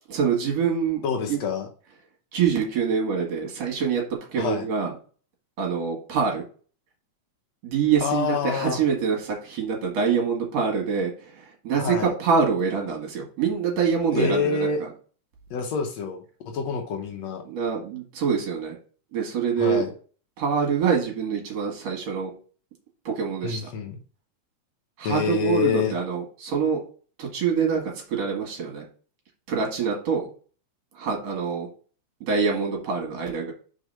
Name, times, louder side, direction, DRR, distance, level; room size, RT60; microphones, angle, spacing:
voice 1, 0.1-1.4 2.3-4.9 5.6-6.5 7.6-14.9 17.5-18.8 19.1-19.9 20.4-22.3 23.0-23.7 25.0-26.8 27.2-28.9 29.5-30.3 30.9-31.7 32.2-33.5, right 6 dB, 60° right, 0 dB, 2.8 m, -25 dB
voice 2, 1.0-1.7 4.4-4.7 8.0-8.8 11.8-12.1 14.1-14.8 15.5-16.2 16.5-17.4 19.6-19.9 23.4-23.9 25.0-25.9, left 5 dB, 70° left, 3 dB, 2.0 m, -26 dB
4.9 x 4.6 x 5.4 m, 0.40 s
omnidirectional pair, 3.4 m